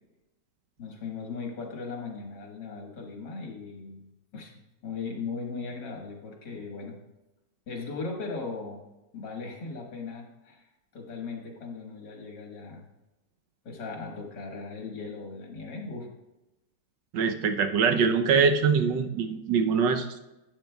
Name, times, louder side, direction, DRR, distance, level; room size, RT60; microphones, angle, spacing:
voice 1, 0.8-4.1 4.3-4.5 4.8-7.0 7.7-8.8 9.1-12.9 13.6-16.1 17.9-18.3, left 4 dB, 75° left, 1 dB, 2.2 m, -38 dB
voice 2, 17.1-20.2, right 5 dB, 85° right, 6 dB, 1.5 m, -23 dB
11.5 x 8.9 x 2.3 m, 0.98 s
omnidirectional pair, 1.9 m